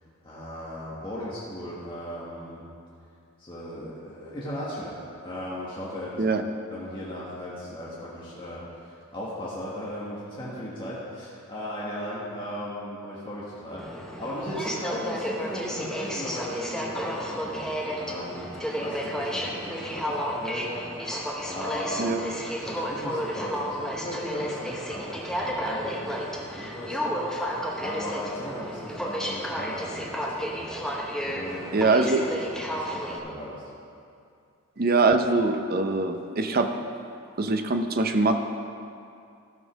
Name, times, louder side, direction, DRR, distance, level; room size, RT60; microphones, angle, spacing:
voice 1, 0.2-2.6 3.4-4.9 5.2-6.4 6.7-22.2 22.6-31.9 32.7-33.6, equal, 25° left, -8 dB, 1.5 m, -37 dB
Aircraft, 13.8-33.2, equal, 5° left, 0.8 m, -32 dB
voice 2, 31.7-32.2 34.8-36.7 37.4-38.3, right 3 dB, 45° right, 7 dB, 0.7 m, -23 dB
13.5 x 5.4 x 6.2 m, 2.4 s
head